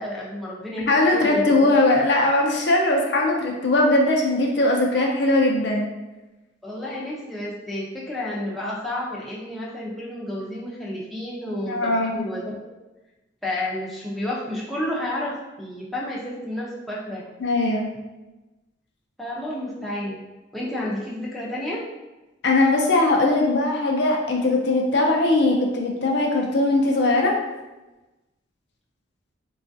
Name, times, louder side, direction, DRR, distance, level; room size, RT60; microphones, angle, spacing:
voice 1, 0.0-1.9 6.6-12.5 13.4-17.3 19.2-20.2 20.5-21.8, left 1 dB, ahead, -7 dB, 0.5 m, -31 dB
voice 2, 0.9-5.9 11.7-12.2 17.4-17.9 22.4-27.3, left 2 dB, 60° left, 0 dB, 0.5 m, -20 dB
4.1 x 2.3 x 2.6 m, 1.1 s
head